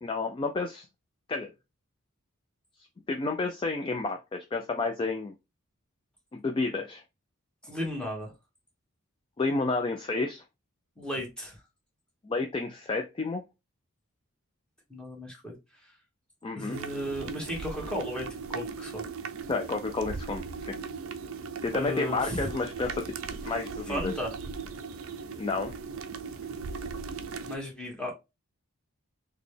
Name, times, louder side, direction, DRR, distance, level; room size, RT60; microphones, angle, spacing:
voice 1, 0.0-0.9 1.3-1.5 3.1-5.3 6.3-7.0 9.4-10.4 12.2-13.4 16.4-16.8 19.5-20.7 21.6-23.0 23.4-24.1 25.4-25.7, left 3 dB, 25° left, 4 dB, 0.3 m, -30 dB
voice 2, 7.6-8.3 11.0-11.6 14.9-15.9 16.5-19.1 21.7-22.4 23.9-24.3 27.4-28.1, equal, 5° left, -2 dB, 1.2 m, -35 dB
sound 1, 16.7-27.6, right 5 dB, 65° right, 0.4 m, -38 dB
3.9 x 2.2 x 3.2 m, 0.24 s
head